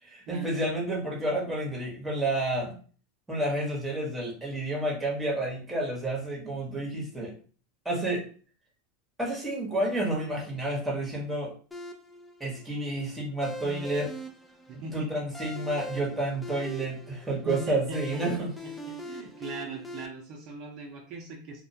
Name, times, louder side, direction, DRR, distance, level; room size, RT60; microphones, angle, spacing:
voice 1, 0.0-2.7 3.3-7.3 7.8-8.2 9.2-11.5 12.4-14.1 14.7-18.5, right 1 dB, 5° right, -3 dB, 1.0 m, -30 dB
sound 1, 11.7-20.1, right 1 dB, 10° left, 0.4 m, -41 dB
voice 2, 14.7-15.3 17.4-21.6, right 2 dB, 50° right, -1 dB, 0.6 m, -40 dB
2.4 x 2.2 x 2.7 m, 0.41 s
hypercardioid pair, 110°, 0 cm